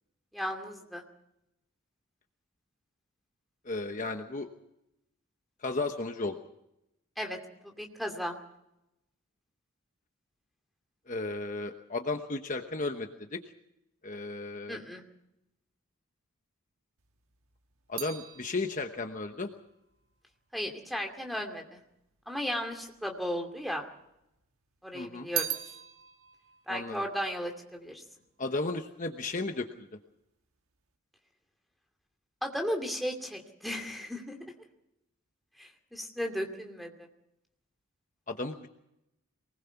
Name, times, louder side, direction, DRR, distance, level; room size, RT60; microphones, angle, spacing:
voice 1, 0.3-1.0 7.2-7.4 7.6-8.4 14.7-15.0 20.5-21.8 22.3-23.8 24.8-25.5 26.7-28.0 32.4-34.4 35.6-37.1, equal, ahead, 2 dB, 2.5 m, -35 dB
voice 2, 3.6-4.5 5.6-6.4 11.1-13.4 14.0-14.8 17.9-19.5 24.9-25.3 26.7-27.0 28.4-29.7 38.3-38.7, left 3 dB, 35° left, 5 dB, 1.0 m, -34 dB
sound 1, 17.0-21.4 22.2-23.0 23.3-24.4 24.8-28.3 28.6-29.1, right 11 dB, 80° right, 1.4 m, -41 dB
24.0 x 20.0 x 5.8 m, 0.85 s
head